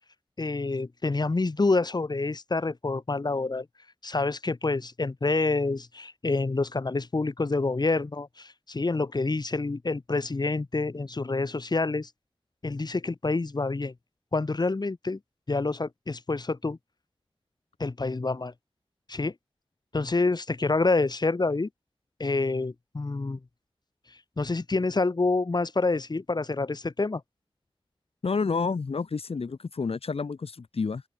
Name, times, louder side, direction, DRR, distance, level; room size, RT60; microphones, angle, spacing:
voice 1, 0.4-3.7 4.0-12.1 12.6-13.9 14.3-15.2 15.5-16.8 17.8-18.5 19.1-19.3 19.9-21.7 22.2-23.4 24.4-27.2, left 3 dB, 45° left, 3.1 m, -27 dB
voice 2, 28.2-31.0, left 4 dB, 75° left, 3.2 m, -29 dB
open air
wide cardioid pair, 90°, 10 cm